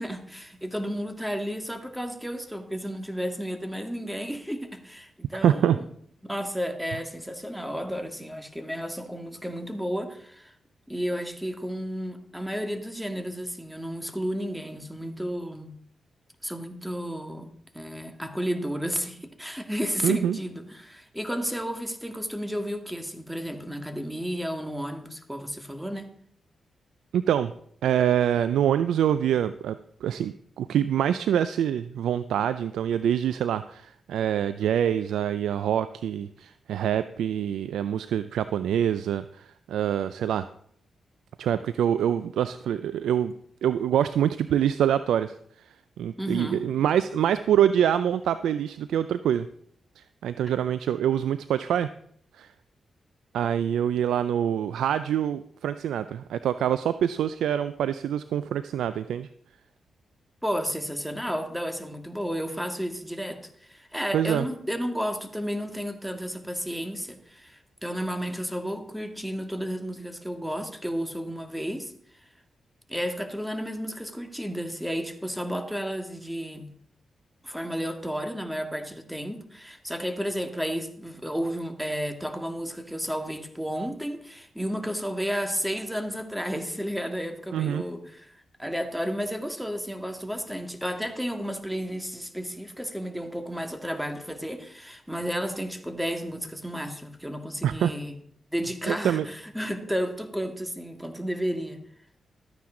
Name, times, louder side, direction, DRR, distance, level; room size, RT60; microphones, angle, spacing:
voice 1, 0.0-5.8 6.2-10.5 10.9-15.8 16.4-17.5 17.7-26.1 46.2-46.6 60.4-71.9 72.9-76.7 77.4-88.3 88.6-98.1 98.5-101.8, equal, 5° right, 6 dB, 1.9 m, -32 dB
voice 2, 5.4-5.8 20.0-20.4 27.1-27.5 27.8-40.5 41.4-43.3 43.6-45.7 46.0-49.5 50.0-51.9 52.4-52.5 53.3-59.3 64.1-64.5 87.5-87.8 97.6-97.9 98.9-99.3, right 9 dB, 85° right, 13 dB, 0.3 m, -25 dB
13.0 x 9.5 x 3.8 m, 0.64 s
supercardioid pair, 50°, 0 cm